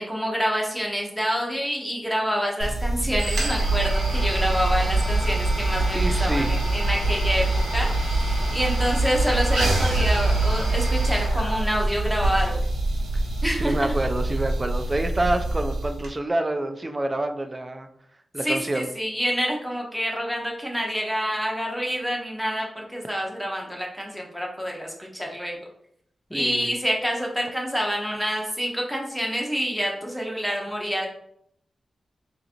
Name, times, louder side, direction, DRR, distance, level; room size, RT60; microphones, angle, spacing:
voice 1, 0.0-12.6 13.4-13.7 18.4-25.6 26.3-31.1, equal, ahead, -1 dB, 0.9 m, -27 dB
sound 1, 2.6-16.1, right 2 dB, 90° right, 1.1 m, -24 dB
voice 2, 5.9-6.5 13.5-17.9 18.3-18.9 26.3-26.7, right 1 dB, 30° right, 7 dB, 0.4 m, -27 dB
3.7 x 2.8 x 2.6 m, 0.71 s
cardioid pair, 75°, 0 cm